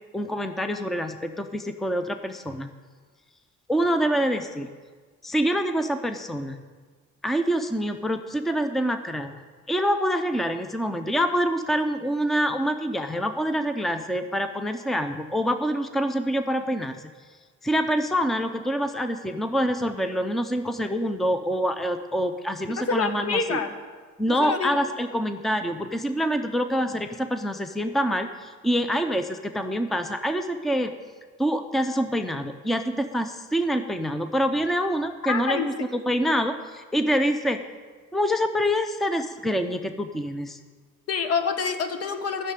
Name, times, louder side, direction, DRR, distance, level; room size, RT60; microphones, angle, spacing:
voice 1, 0.1-2.7 3.7-4.7 5.2-6.6 7.2-9.4 9.7-17.0 17.6-23.6 24.2-30.9 31.4-35.7 36.1-37.6 38.1-40.6, equal, ahead, 8 dB, 0.7 m, -26 dB
voice 2, 22.8-23.7 24.3-24.8 35.2-36.0 41.1-42.5, left 5 dB, 55° left, 8 dB, 1.4 m, -27 dB
12.5 x 6.7 x 9.0 m, 1.5 s
cardioid pair, 100°, 30 cm